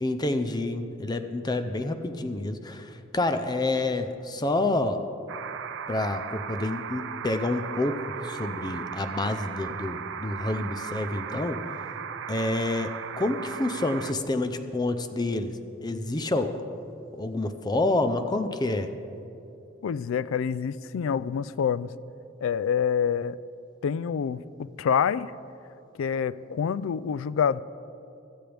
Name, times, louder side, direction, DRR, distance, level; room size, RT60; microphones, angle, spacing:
voice 1, 0.0-5.0 5.9-11.7 12.3-16.6 17.2-18.9, left 2 dB, 20° left, 8 dB, 0.5 m, -28 dB
sound 1, 5.3-14.1, right 7 dB, 65° right, 0.5 m, -37 dB
voice 2, 19.8-21.9 22.4-23.4 23.8-25.3 26.0-27.6, left 7 dB, 75° left, 17 dB, 0.3 m, -27 dB
16.5 x 13.0 x 3.4 m, 2.7 s
head